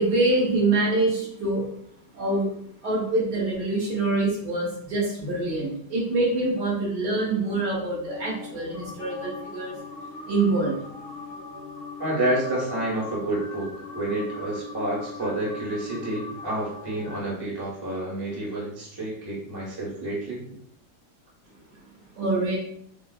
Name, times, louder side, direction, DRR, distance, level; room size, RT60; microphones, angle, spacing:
voice 1, 0.0-1.6 2.1-2.5 2.8-9.7 10.3-10.8 22.1-22.6, right 2 dB, 65° right, -4 dB, 1.7 m, -25 dB
sound 1, 8.1-17.2, left 4 dB, 80° left, 0.5 m, -40 dB
voice 2, 12.0-20.4, right 1 dB, 15° right, -6 dB, 0.8 m, -29 dB
4.9 x 2.0 x 2.3 m, 0.67 s
omnidirectional pair, 1.9 m